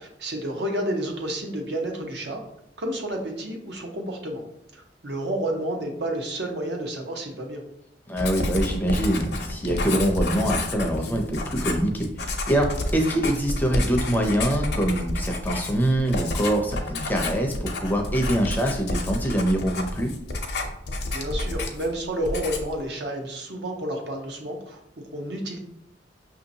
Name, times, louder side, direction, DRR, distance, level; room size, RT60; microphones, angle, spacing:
voice 1, 0.0-2.4 2.8-4.4 4.7-7.6 21.1-24.8 25.1-25.6, right 1 dB, 70° right, 2 dB, 0.9 m, -30 dB
voice 2, 8.1-20.1, right 1 dB, 10° left, 1 dB, 0.5 m, -24 dB
Writing, 8.2-22.0 22.2-22.8, left 2 dB, 65° left, 0.6 m, -30 dB
5.9 x 2.7 x 2.7 m, 0.77 s
head